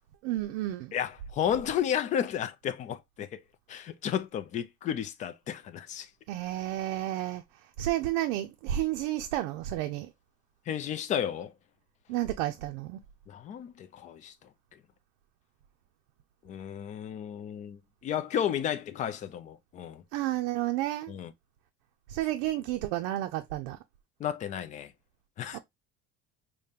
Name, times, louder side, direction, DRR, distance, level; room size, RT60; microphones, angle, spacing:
voice 1, 0.2-1.0 6.3-10.1 12.1-13.0 20.1-21.1 22.1-23.8 25.5-25.6, right 14 dB, 85° right, 0.5 m, -31 dB
voice 2, 0.9-3.4 3.7-6.1 10.7-11.5 13.3-14.5 16.4-20.0 21.1-21.3 24.2-24.9 25.4-25.6, left 9 dB, 25° left, 0.4 m, -33 dB
5.0 x 2.2 x 2.7 m
cardioid pair, 160°, 31 cm